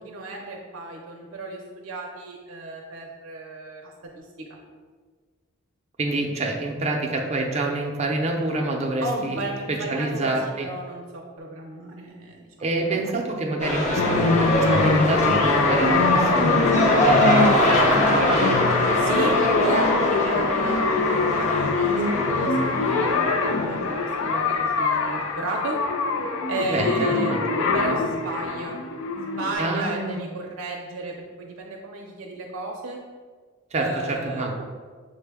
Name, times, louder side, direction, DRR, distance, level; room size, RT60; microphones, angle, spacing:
voice 1, 0.0-4.6 9.0-12.5 12.9-13.2 19.0-21.7 22.1-22.6 22.9-25.8 26.5-27.3 27.7-28.8 29.2-33.0 33.7-34.4, right 2 dB, 80° right, -1 dB, 0.5 m, -34 dB
voice 2, 6.0-9.4 9.7-10.7 12.6-18.4 26.7-27.7 29.6-30.2 33.7-34.6, right 2 dB, 35° right, 1 dB, 0.5 m, -27 dB
sound 1, 13.6-24.5 24.9-25.0, equal, 35° left, 0.7 m, -23 dB
sound 2, 13.9-29.5, left 4 dB, 75° left, 0.4 m, -23 dB
6.3 x 2.1 x 3.4 m, 1.5 s
head